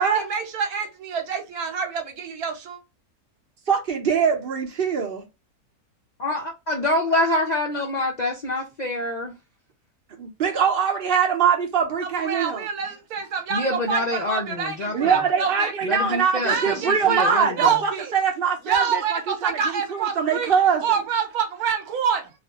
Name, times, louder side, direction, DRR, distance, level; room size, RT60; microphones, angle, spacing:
voice 1, 0.0-2.8 12.0-15.7 16.5-18.1 18.6-20.5 20.8-22.3, right 6 dB, 75° right, 1.3 m, -27 dB
voice 2, 3.7-5.2 10.2-12.6 14.9-19.0 19.4-19.6 19.9-20.8, right 7 dB, 50° right, 0.8 m, -22 dB
voice 3, 6.2-9.3 13.5-15.2 15.8-17.8, left 1 dB, 70° left, 0.4 m, -26 dB
3.2 x 2.5 x 2.8 m
omnidirectional pair, 1.6 m